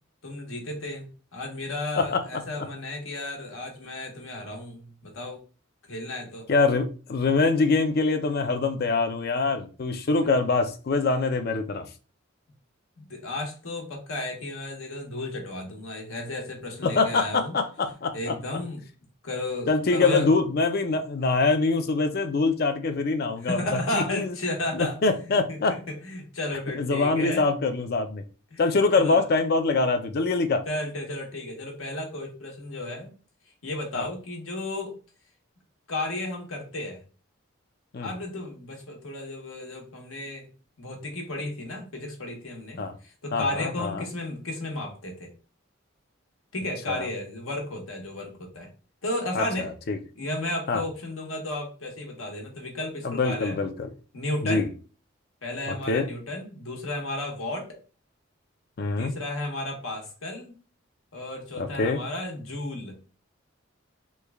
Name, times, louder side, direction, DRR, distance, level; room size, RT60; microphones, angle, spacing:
voice 1, 0.2-5.4 5.9-6.5 13.0-17.5 18.1-18.8 19.2-20.3 23.4-25.0 25.5-27.4 28.5-28.6 28.9-29.2 30.7-33.1 33.6-34.9 35.9-37.0 38.0-40.5 40.8-45.3 46.5-48.7 49.0-49.7 50.2-53.6 54.1-54.7 55.4-57.7 59.0-60.6 61.1-63.0, left 1 dB, 85° left, 1.1 m, -33 dB
voice 2, 2.0-2.4 6.5-11.9 16.8-18.4 19.7-24.3 24.7-25.8 26.8-28.2 28.6-30.6 33.9-34.1 37.9-38.1 42.8-42.9 43.3-44.1 46.9-47.1 49.3-50.0 50.7-50.8 53.0-53.9 54.4-54.7 55.7-56.1 58.8-59.1 61.6-62.0, left 3 dB, 50° left, 0.4 m, -24 dB
3.2 x 2.3 x 3.4 m
head